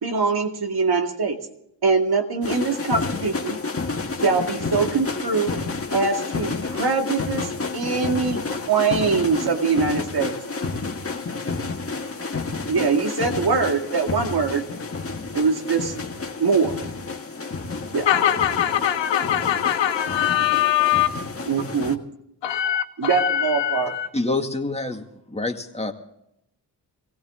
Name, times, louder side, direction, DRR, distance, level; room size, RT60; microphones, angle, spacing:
voice 1, 0.0-1.4 1.8-3.6 4.2-5.6 5.9-10.3 12.7-14.6 15.3-15.9 16.4-16.7 17.9-18.1 21.5-22.0 23.0-23.9, right 4 dB, 60° right, 4 dB, 2.3 m, -23 dB
sound 1, 2.4-22.0, left 3 dB, 30° left, 1.7 m, -30 dB
voice 2, 18.1-21.1 22.4-24.1, left 11 dB, 90° left, 7 dB, 1.3 m, -22 dB
voice 3, 24.1-25.0 25.3-25.9, left 2 dB, 15° left, 3 dB, 2.1 m, -26 dB
18.0 x 16.5 x 3.8 m, 0.78 s
cardioid pair, 55°, 43 cm